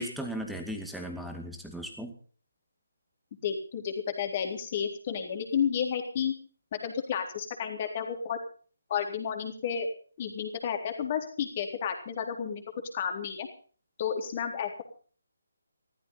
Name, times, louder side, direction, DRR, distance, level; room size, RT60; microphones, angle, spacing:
voice 1, 0.0-2.1, equal, ahead, 3 dB, 2.2 m, -36 dB
voice 2, 3.4-6.3 6.8-8.4 8.9-9.9 10.2-12.6 12.9-13.5 14.0-14.8, left 7 dB, 35° left, 4 dB, 3.8 m, -31 dB
15.5 x 14.0 x 5.7 m, 0.43 s
figure-of-eight pair, 150°, 0 cm